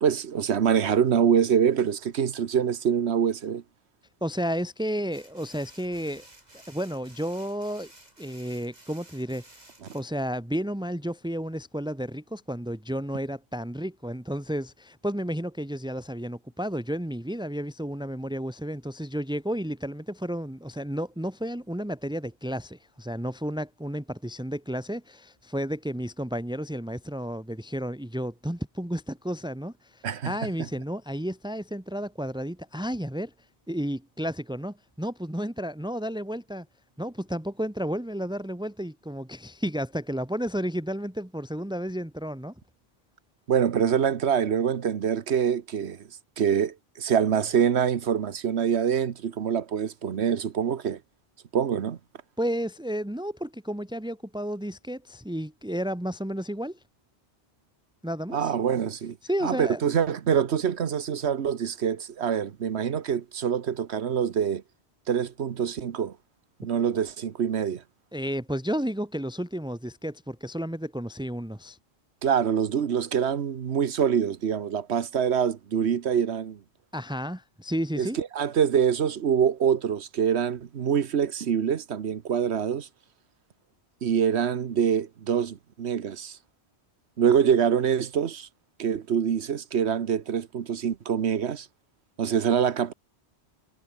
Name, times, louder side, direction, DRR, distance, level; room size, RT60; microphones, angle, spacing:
voice 1, 0.0-3.6 30.0-30.3 43.5-46.1 46.4-51.0 51.5-52.0 58.3-59.2 59.4-64.6 65.1-66.1 66.6-67.8 72.2-76.6 78.0-82.9 84.0-86.4 87.2-88.5 88.8-91.7 92.2-92.9, right 8 dB, 85° right, 1.3 m, -25 dB
voice 2, 4.2-6.3 6.5-7.9 8.2-9.6 9.9-33.3 33.7-36.7 37.0-42.5 52.4-56.8 58.0-58.5 59.2-59.8 68.1-71.8 76.9-78.2, equal, 5° right, 1.8 m, -32 dB
sound 1, 5.1-10.6, right 1 dB, 40° right, 4.8 m, -53 dB
omnidirectional pair, 1.1 m